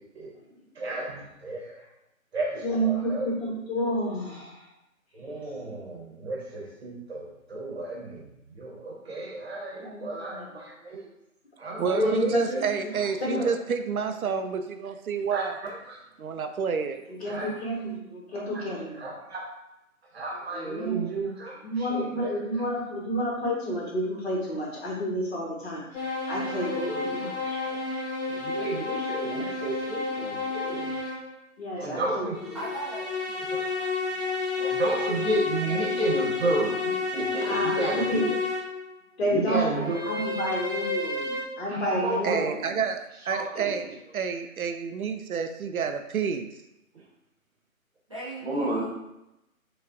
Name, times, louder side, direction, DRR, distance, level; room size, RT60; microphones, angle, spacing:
voice 1, 0.7-1.8 2.3-3.3 5.1-11.0 11.6-12.6 13.3-13.5 15.3-15.4 15.9-16.0 17.2-17.5 18.3-18.6 19.0-19.4 20.1-22.3 26.3-27.8 28.3-30.9 31.8-32.3 33.5-33.7 34.6-38.2 39.2-40.1 41.7-42.4 43.3-43.7 48.4-48.9, right 2 dB, 50° right, -2 dB, 1.0 m, -32 dB
voice 2, 2.6-4.7 9.8-10.5 11.9-12.4 12.8-13.6 17.2-19.1 20.5-21.0 21.6-27.6 31.6-32.6 37.4-38.3 39.2-42.7, equal, 45° left, -4 dB, 1.3 m, -30 dB
voice 3, 11.8-15.5 16.2-17.0 42.2-46.5, right 6 dB, 80° right, 7 dB, 0.5 m, -29 dB
sound 1, 25.9-31.3 32.3-38.8 39.8-41.4, left 4 dB, 30° left, 1.1 m, -31 dB
voice 4, 32.5-33.6 39.5-40.5 48.1-48.9, right 1 dB, 25° right, -10 dB, 0.5 m, -40 dB
4.6 x 2.3 x 2.5 m, 0.89 s
figure-of-eight pair, 145°, 42 cm